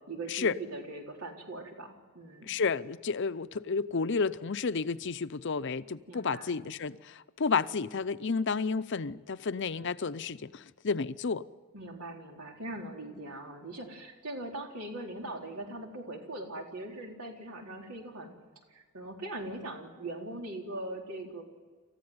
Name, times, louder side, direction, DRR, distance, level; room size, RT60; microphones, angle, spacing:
voice 1, 0.1-2.5 6.1-6.6 11.7-18.3 18.7-21.4, right 2 dB, 85° right, 3.9 m, -41 dB
voice 2, 2.4-11.4, left 5 dB, 55° left, 0.6 m, -31 dB
28.0 x 14.5 x 9.5 m
head